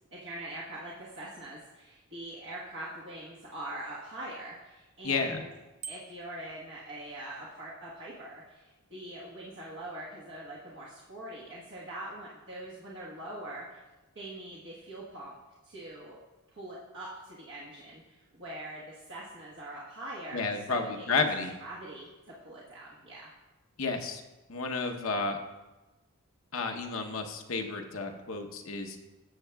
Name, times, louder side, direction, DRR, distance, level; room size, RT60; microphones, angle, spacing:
voice 1, 0.0-5.5 5.9-13.8 14.1-15.3 15.6-16.2 16.5-21.2 21.6-23.3, right 1 dB, 55° right, -7 dB, 1.3 m, -43 dB
voice 2, 5.0-5.4 20.3-21.5 23.8-24.2 24.5-25.4 26.5-29.0, left 4 dB, 65° left, 4 dB, 0.9 m, -31 dB
Bicycle bell, 5.8-6.4, right 5 dB, 35° right, 0.4 m, -44 dB
14.0 x 7.3 x 2.3 m, 1.1 s
head